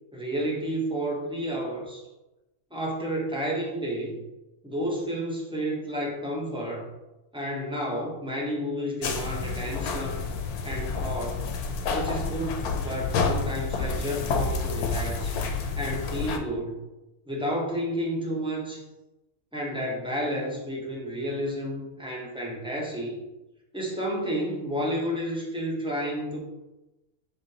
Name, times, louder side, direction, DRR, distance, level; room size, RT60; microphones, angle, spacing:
voice 1, 0.1-2.1 2.7-4.2 4.6-6.9 7.3-10.3 10.6-11.4 11.9-15.4 15.8-16.8 17.3-18.8 19.5-23.2 23.7-26.4, equal, 5° right, -3 dB, 0.6 m, -31 dB
sound 1, 9.0-16.4, left 4 dB, 85° left, 1.1 m, -29 dB
5.0 x 3.6 x 2.8 m, 1.0 s
omnidirectional pair, 1.5 m